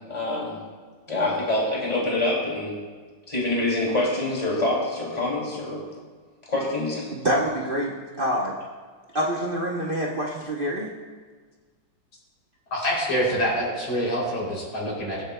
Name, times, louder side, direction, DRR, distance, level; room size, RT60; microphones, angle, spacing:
voice 1, 0.1-0.5 1.1-2.7 3.3-5.8 6.5-6.9, left 2 dB, 20° left, -5 dB, 2.7 m, -25 dB
voice 2, 7.1-8.6 9.1-10.9, equal, 45° right, -3 dB, 0.7 m, -26 dB
voice 3, 12.7-15.2, equal, 85° left, -5 dB, 4.0 m, -26 dB
21.5 x 7.8 x 2.2 m, 1.5 s
omnidirectional pair, 2.1 m